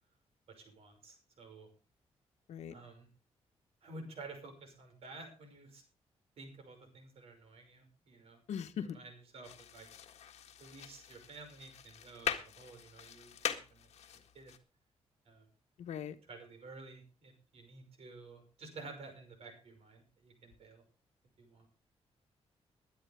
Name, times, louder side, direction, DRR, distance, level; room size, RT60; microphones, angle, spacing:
voice 1, 0.5-1.7 2.7-3.1 3.8-5.8 6.4-8.4 8.9-9.9 10.6-13.9 14.3-14.5 15.3-15.5 16.3-20.8 21.4-21.7, right 3 dB, 65° right, 6 dB, 5.8 m, -52 dB
voice 2, 8.5-9.0 15.8-16.1, left 8 dB, 90° left, 9 dB, 1.3 m, -40 dB
sound 1, 9.4-14.6, left 8 dB, 70° left, 1.7 m, -42 dB
22.0 x 10.5 x 3.5 m, 0.31 s
wide cardioid pair, 155°, 11 cm